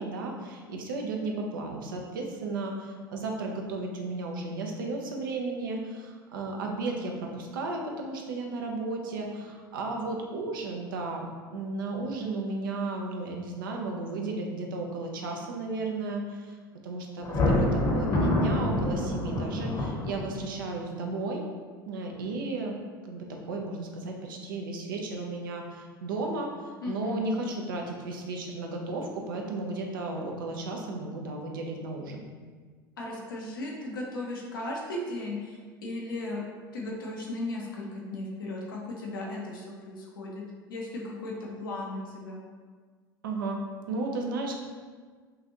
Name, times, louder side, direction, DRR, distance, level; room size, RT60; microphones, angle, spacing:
voice 1, 0.0-16.5 16.8-21.5 21.9-22.7 23.0-32.3 43.2-43.6 43.9-44.6, right 2 dB, 70° right, 1 dB, 0.6 m, -34 dB
Thunder, 17.2-20.5, left 1 dB, 35° left, 1.0 m, -26 dB
voice 2, 26.8-27.3 33.0-36.4 36.7-40.3 40.7-42.4, left 2 dB, 75° left, -2 dB, 0.9 m, -36 dB
5.6 x 2.6 x 2.9 m, 1.5 s
figure-of-eight pair, 75°, 12 cm